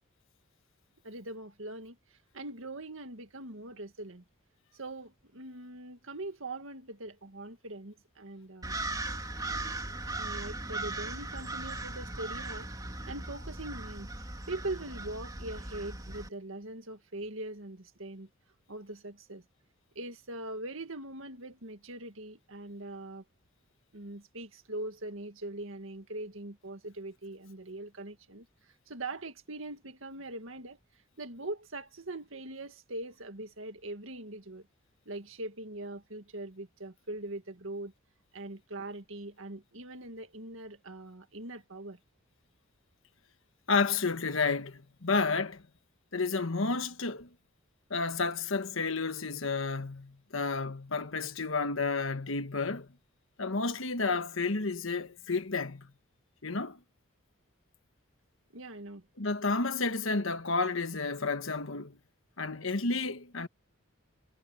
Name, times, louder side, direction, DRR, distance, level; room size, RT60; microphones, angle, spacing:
voice 1, 1.0-4.2 4.7-8.8 10.2-12.7 13.1-14.1 14.5-18.3 18.7-19.4 20.0-23.2 23.9-30.8 31.2-34.7 35.1-37.9 38.3-42.0 58.5-59.1, right 2 dB, 70° right, 2.1 m, -42 dB
sound 1, 8.6-16.3, right 2 dB, 20° right, 3.0 m, -38 dB
voice 2, 43.7-45.6 46.1-47.3 47.9-52.9 53.4-55.9 56.4-56.8 59.2-62.0 62.4-63.5, left 4 dB, 70° left, 1.4 m, -31 dB
head